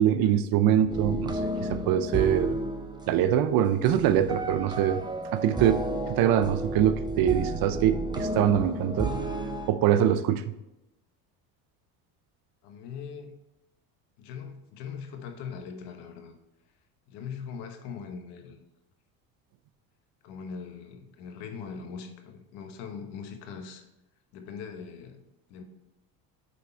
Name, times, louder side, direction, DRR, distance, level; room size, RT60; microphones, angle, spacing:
voice 1, 0.0-2.6 3.1-5.0 5.3-5.8 6.1-9.1 9.7-10.4, right 10 dB, 55° right, 12 dB, 0.6 m, -23 dB
sound 1, 0.9-9.7, right 2 dB, 10° right, 0.7 m, -32 dB
voice 2, 12.6-13.4 14.2-16.4 17.1-18.6 20.2-23.8 24.3-25.2 25.5-25.6, left 6 dB, 70° left, 5 dB, 1.2 m, -41 dB
8.5 x 3.5 x 4.4 m, 0.91 s
supercardioid pair, 100°, 42 cm